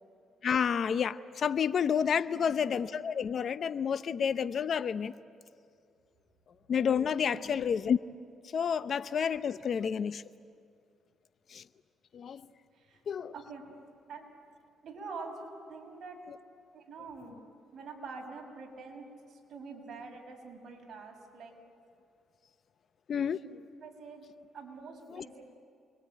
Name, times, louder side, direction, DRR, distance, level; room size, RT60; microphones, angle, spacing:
voice 1, 0.4-5.1 6.7-8.0 8.5-10.2 11.5-11.6 12.1-12.4 13.1-13.3 23.1-23.6 25.1-25.3, left 7 dB, 55° left, 13 dB, 0.8 m, -30 dB
voice 2, 2.3-2.6 7.3-7.5 12.7-13.0 13.3-13.6 14.1-14.3 14.8-16.3 16.7-17.4 17.7-21.5 23.8-24.3 24.5-25.6, right 4 dB, 55° right, 1 dB, 6.4 m, -45 dB
29.0 x 22.5 x 9.2 m, 2.3 s
cardioid pair, 90°, 0 cm